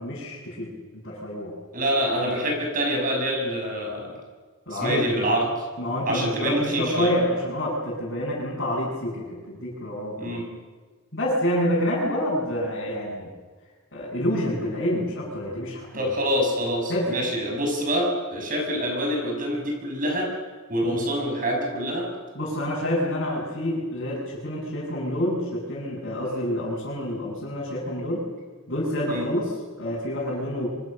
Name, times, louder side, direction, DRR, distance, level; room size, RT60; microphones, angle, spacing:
voice 1, 0.0-1.5 4.7-5.1 5.8-10.4 11.1-13.3 13.9-16.0 16.9-17.3 20.8-21.0 22.3-28.3 28.7-30.7, equal, 50° left, -8 dB, 8.0 m, -28 dB
voice 2, 1.7-4.2 4.7-5.6 6.1-7.1 10.2-10.5 15.9-20.3 20.7-22.1 29.1-29.3, equal, 40° right, 1 dB, 7.2 m, -26 dB
26.5 x 25.0 x 6.9 m, 1.4 s
head